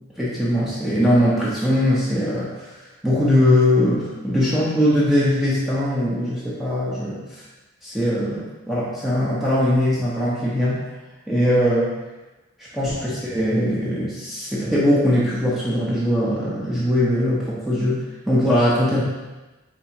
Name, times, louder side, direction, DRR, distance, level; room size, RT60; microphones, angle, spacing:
voice 1, 0.2-2.6 3.0-7.2 7.8-10.9 11.3-11.9 12.7-19.0, left 1 dB, ahead, -9 dB, 0.8 m, -21 dB
4.6 x 3.6 x 3.0 m, 1.1 s
head